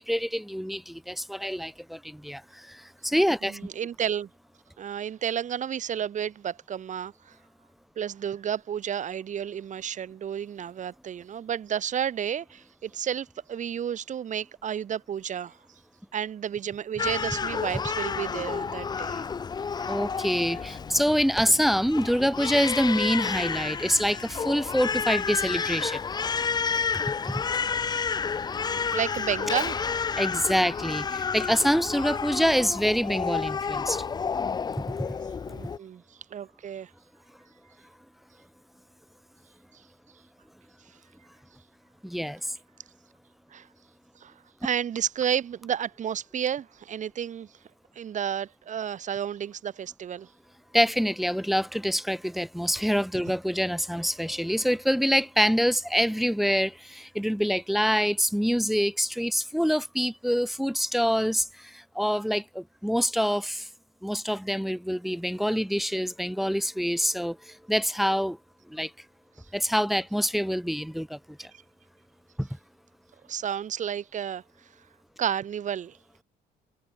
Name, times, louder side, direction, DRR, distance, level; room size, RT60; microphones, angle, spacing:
voice 1, 0.0-3.7 19.9-26.0 27.3-27.4 30.2-34.0 42.0-42.6 50.7-63.7 64.0-68.4 68.7-68.9 69.5-71.5 72.4-72.5, equal, ahead, 1.8 m, -26 dB
voice 2, 3.4-4.3 4.8-7.3 8.0-15.6 16.1-19.2 28.5-29.8 35.5-36.0 36.3-36.9 43.5-43.7 44.2-44.3 44.6-47.5 48.0-50.3 73.3-74.4 75.2-76.0, right 9 dB, 45° right, 2.5 m, -31 dB
Crying sobbing, 17.0-35.8, left 5 dB, 25° left, 0.6 m, -30 dB
cardioid pair, 110°, 17 cm